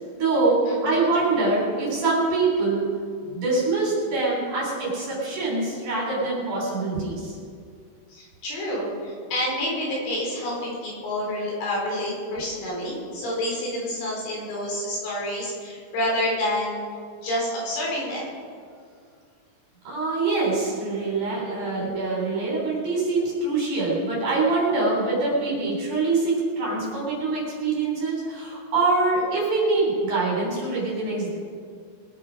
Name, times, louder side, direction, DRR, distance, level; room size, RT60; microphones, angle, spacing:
voice 1, 0.1-2.9 3.3-7.4 19.8-31.4, right 3 dB, 40° right, -3 dB, 4.6 m, -24 dB
voice 2, 0.7-1.1 8.1-16.8 17.2-18.3 21.4-21.9 25.2-25.3, left 1 dB, 70° left, -4 dB, 6.5 m, -29 dB
21.5 x 10.5 x 5.2 m, 2.1 s
omnidirectional pair, 5.8 m